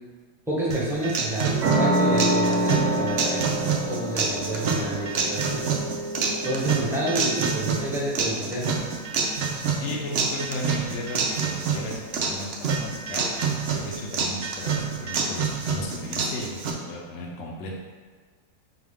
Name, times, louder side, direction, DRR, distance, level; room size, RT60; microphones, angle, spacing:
voice 1, 0.5-3.6 3.9-5.6 6.4-8.7, right 1 dB, ahead, -7 dB, 0.7 m, -29 dB
sound 1, 0.7-16.7, right 5 dB, 90° right, 0.5 m, -27 dB
sound 2, 1.6-8.8, right 1 dB, 60° right, 1.0 m, -28 dB
voice 2, 9.8-13.3 13.7-17.7, left 1 dB, 55° left, -1 dB, 0.8 m, -35 dB
5.9 x 2.4 x 3.5 m, 1.5 s
omnidirectional pair, 1.8 m